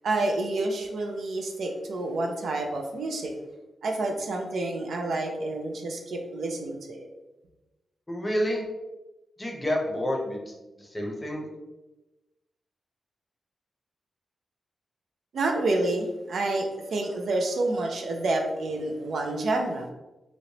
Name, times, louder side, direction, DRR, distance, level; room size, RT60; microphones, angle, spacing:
voice 1, 0.0-3.3 3.8-7.1 15.3-19.9, right 2 dB, 75° right, 2 dB, 0.5 m, -28 dB
voice 2, 8.1-8.6 9.4-10.5 10.8-11.5, equal, 15° left, 0 dB, 0.7 m, -29 dB
3.1 x 2.9 x 2.8 m, 1.0 s
wide cardioid pair, 120°, 0 cm